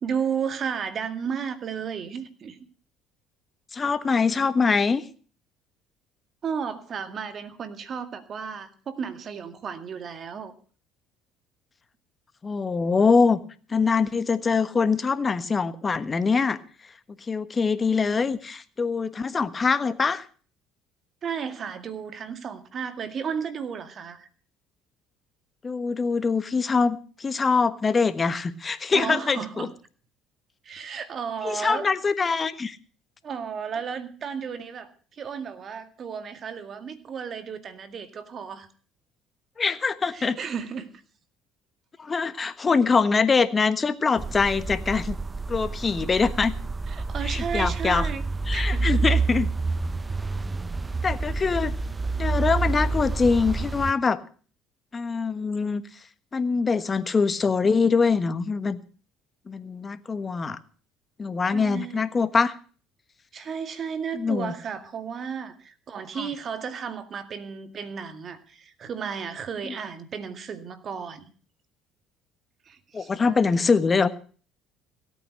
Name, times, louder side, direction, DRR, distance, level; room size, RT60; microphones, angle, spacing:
voice 1, 0.0-2.6 6.4-10.5 21.2-24.3 28.9-29.7 30.6-31.9 33.2-38.7 40.1-40.9 46.9-48.2 48.5-49.1 61.5-62.1 63.3-71.3 72.7-73.5, right 7 dB, 45° right, 9 dB, 2.1 m, -33 dB
voice 2, 3.7-5.0 12.4-13.4 13.7-16.6 17.3-20.2 25.6-29.7 31.4-32.8 39.6-40.4 42.0-45.1 45.5-46.5 47.3-48.1 48.5-49.5 51.0-51.7 52.2-54.2 54.9-55.8 56.3-58.8 59.5-60.6 61.2-62.5 64.1-64.5 66.2-66.3 72.9-74.1, left 4 dB, 30° left, 13 dB, 1.3 m, -23 dB
sound 1, 44.2-53.9, right 4 dB, 25° right, 0.8 m, -28 dB
16.5 x 8.9 x 6.4 m, 0.42 s
hypercardioid pair, 70°, 0 cm